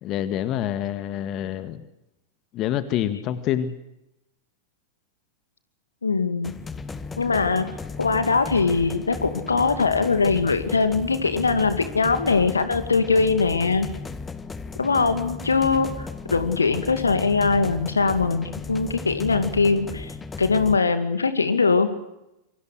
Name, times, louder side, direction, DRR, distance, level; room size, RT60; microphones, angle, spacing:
voice 1, 0.0-1.9 2.5-3.7, left 11 dB, 35° left, 12 dB, 1.9 m, -27 dB
voice 2, 6.0-6.5 7.2-7.7 8.0-13.9 14.8-21.9, left 4 dB, 75° left, 10 dB, 2.4 m, -22 dB
sound 1, 6.4-20.8, left 4 dB, 15° left, 1.7 m, -36 dB
28.0 x 24.0 x 6.6 m, 0.89 s
figure-of-eight pair, 90°, 0 cm